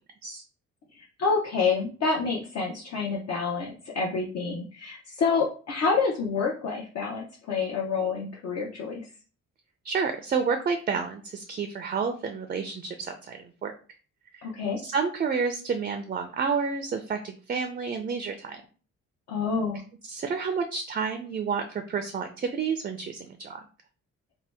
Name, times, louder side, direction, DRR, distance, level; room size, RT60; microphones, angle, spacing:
voice 1, 0.9-9.0 14.4-14.8 19.3-19.8, left 4 dB, 60° left, -3 dB, 0.7 m, -28 dB
voice 2, 9.8-13.7 14.8-18.6 20.1-23.6, right 5 dB, 30° right, 7 dB, 0.4 m, -30 dB
2.8 x 2.1 x 3.3 m, 0.37 s
cardioid pair, 90°, 30 cm